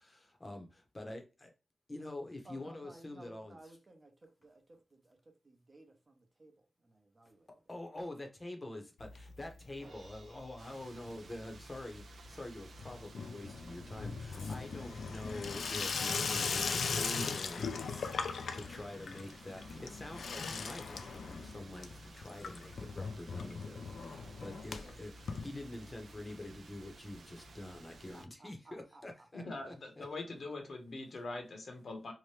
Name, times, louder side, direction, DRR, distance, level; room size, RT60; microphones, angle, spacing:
voice 1, 0.0-1.5 1.9-3.6 7.7-30.1, left 1 dB, 25° left, 0.7 m, -46 dB
voice 2, 2.4-7.5 14.3-15.0 24.8-25.0 28.1-29.3, right 2 dB, 35° right, 0.7 m, -58 dB
Water tap faucet / Sink (filling or washing), 9.0-9.8 10.0-10.6 10.9-26.2 26.5-26.6 26.8-26.9 27.1-27.2 28.2-28.3, left 5 dB, 80° left, 0.3 m, -39 dB
Crash cymbal, 9.8-12.1, right 3 dB, 60° right, 1.0 m, -61 dB
sound 1, 10.6-28.3, right 4 dB, 75° right, 0.4 m, -57 dB
voice 3, 29.3-32.1, left 2 dB, 60° left, 0.8 m, -43 dB
2.8 x 2.1 x 3.2 m
wide cardioid pair, 110°, 0 cm